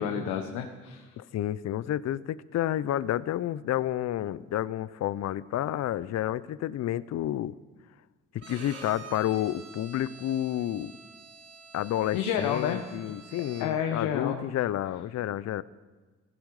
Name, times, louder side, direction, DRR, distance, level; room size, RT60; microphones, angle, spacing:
voice 1, 0.0-1.1 12.1-12.8 13.6-14.4, left 8 dB, 80° left, 4 dB, 1.5 m, -30 dB
voice 2, 1.2-7.5 8.5-10.9 11.7-15.6, left 12 dB, 60° left, 18 dB, 0.7 m, -30 dB
Bowed string instrument, 8.4-14.0, right 4 dB, 55° right, 3.7 m, -48 dB
16.5 x 15.5 x 4.9 m, 1.4 s
supercardioid pair, 60°, 31 cm